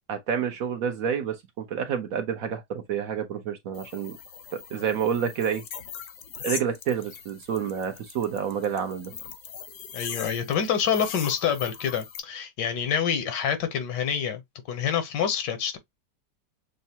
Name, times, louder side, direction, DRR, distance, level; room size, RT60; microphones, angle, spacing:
voice 1, 0.1-4.2 4.5-5.6 6.4-9.1, right 8 dB, 65° right, 1.0 m, -29 dB
sound 1, 3.7-12.2, left 7 dB, 60° left, 0.9 m, -41 dB
voice 2, 9.9-14.4 14.7-15.8, left 8 dB, 85° left, 1.5 m, -27 dB
6.4 x 2.2 x 2.8 m
omnidirectional pair, 1.8 m